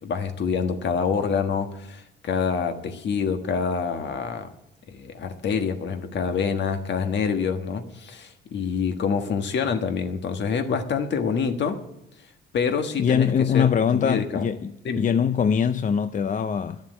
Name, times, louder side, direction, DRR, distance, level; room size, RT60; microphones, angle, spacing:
voice 1, 0.0-4.5 4.9-11.8 12.5-13.3 13.5-14.4 14.8-15.0, left 6 dB, 65° left, 1.5 m, -26 dB
voice 2, 13.0-16.8, left 7 dB, 40° left, 0.5 m, -22 dB
11.0 x 7.2 x 9.5 m
cardioid pair, 90°, 20 cm